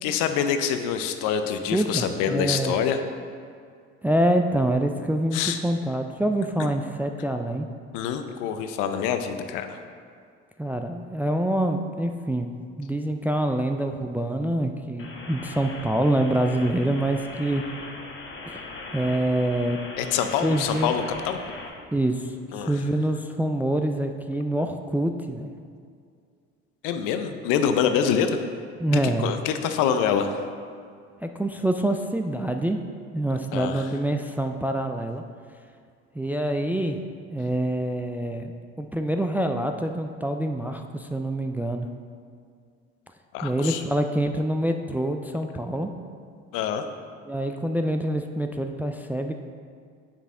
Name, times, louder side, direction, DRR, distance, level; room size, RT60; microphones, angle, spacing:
voice 1, 0.0-3.0 5.3-5.6 7.9-9.8 20.0-21.4 22.5-22.7 26.8-28.4 28.9-30.3 33.5-33.8 43.3-43.8 46.5-46.8, left 8 dB, 70° left, 8 dB, 0.7 m, -25 dB
voice 2, 1.7-2.7 4.0-7.7 10.6-17.6 18.9-19.8 20.4-20.9 21.9-22.4 22.7-25.5 28.8-29.3 31.2-32.8 33.1-35.2 36.2-37.0 37.3-38.5 38.8-41.9 43.4-45.9 47.3-49.3, right 1 dB, 5° right, 5 dB, 0.3 m, -26 dB
sound 1, 15.0-21.7, left 3 dB, 35° left, 1.2 m, -39 dB
7.2 x 5.6 x 3.7 m, 2.2 s
hypercardioid pair, 70°, 33 cm